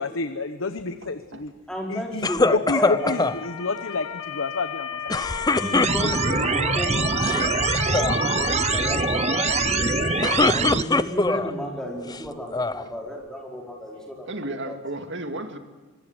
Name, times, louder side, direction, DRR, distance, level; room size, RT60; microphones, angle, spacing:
voice 1, 0.0-1.5 1.9-5.2, left 3 dB, 65° left, 10 dB, 1.1 m, -29 dB
voice 2, 1.0-1.5 10.3-10.5 14.2-15.6, right 1 dB, 60° right, 7 dB, 2.3 m, -34 dB
voice 3, 1.7-3.2 5.6-10.2 10.5-14.3 14.7-14.8, equal, 5° left, 0 dB, 5.1 m, -33 dB
sound 1, 2.2-3.4 5.1-6.4 7.1-7.5 7.7-8.2 10.0-11.5 12.1-12.8, left 3 dB, 20° left, 0.6 m, -23 dB
Motor vehicle (road) / Siren, 2.9-10.4, left 6 dB, 85° left, 1.8 m, -31 dB
sound 2, 5.8-10.8, right 5 dB, 30° right, 0.6 m, -24 dB
24.5 x 20.5 x 7.9 m, 1.4 s
head